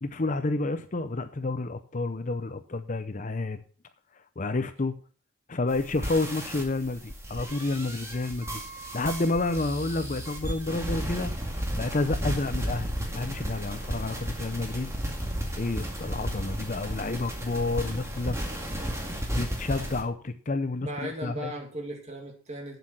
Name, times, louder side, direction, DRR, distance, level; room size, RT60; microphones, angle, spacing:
voice 1, 0.0-3.6 4.4-5.0 5.5-8.6 8.9-11.3 11.8-14.9 15.6-18.4 19.3-21.5, left 2 dB, 35° left, 10 dB, 0.6 m, -30 dB
sound 1, 5.7-20.0, equal, 15° right, 2.1 m, -34 dB
voice 2, 20.8-22.8, equal, 30° right, 2 dB, 2.6 m, -36 dB
8.7 x 7.9 x 6.0 m, 0.41 s
head